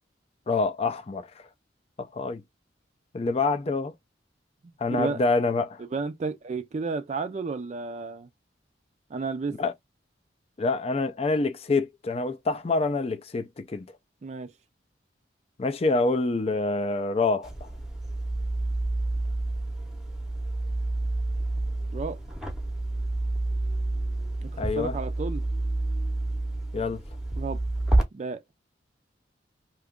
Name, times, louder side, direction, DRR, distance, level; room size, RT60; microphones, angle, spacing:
voice 1, 0.5-1.3 2.0-2.4 3.1-3.9 4.8-5.8 9.6-9.7 10.6-13.9 15.6-17.7 24.6-25.0 26.7-27.0, left 3 dB, 35° left, 0.4 m, -26 dB
voice 2, 5.9-8.3 9.1-9.6 14.2-14.5 21.9-22.2 24.4-25.4 27.4-27.6 28.1-28.4, right 4 dB, 40° right, 0.4 m, -32 dB
sound 1, 17.4-28.0, right 2 dB, ahead, 0.8 m, -29 dB
2.8 x 2.4 x 3.5 m
head